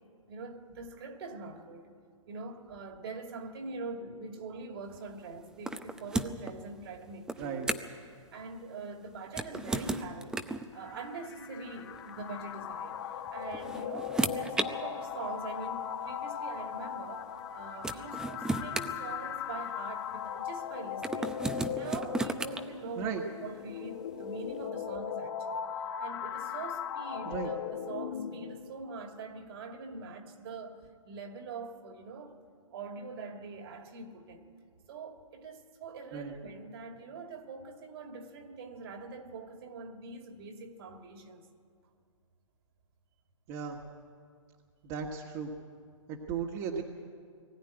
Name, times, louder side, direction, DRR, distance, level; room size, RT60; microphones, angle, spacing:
voice 1, 0.3-1.9 2.3-7.7 8.3-10.4 10.7-13.0 13.3-25.6 26.0-32.4 32.7-34.5 34.9-41.5, right 3 dB, 50° right, 2.6 m, -43 dB
sound 1, 5.6-6.5 7.3-8.0 9.3-10.7 11.9-12.1 13.3-14.7 15.7-15.8 17.4-17.5 17.8-19.7 21.0-22.6, right 2 dB, 5° right, 0.6 m, -34 dB
voice 2, 7.4-7.7 23.0-23.2 27.2-27.5 36.1-36.4 43.5-43.8 44.8-45.5 46.1-46.8, right 6 dB, 30° right, 1.6 m, -36 dB
sound 2, 10.7-28.7, left 8 dB, 50° left, 1.4 m, -39 dB
20.5 x 14.5 x 9.9 m
hypercardioid pair, 145°, 17 cm